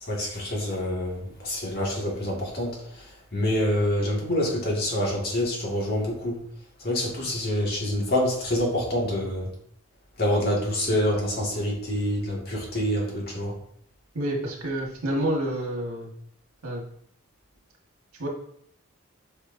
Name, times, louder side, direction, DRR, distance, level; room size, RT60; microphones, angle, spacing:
voice 1, 0.0-6.4 6.8-9.5 10.2-13.6, left 1 dB, 45° left, -3 dB, 2.0 m, -26 dB
voice 2, 14.1-16.1 16.6-16.8 18.2-18.3, right 1 dB, 80° right, -1 dB, 1.7 m, -28 dB
8.6 x 5.2 x 2.7 m, 0.67 s
head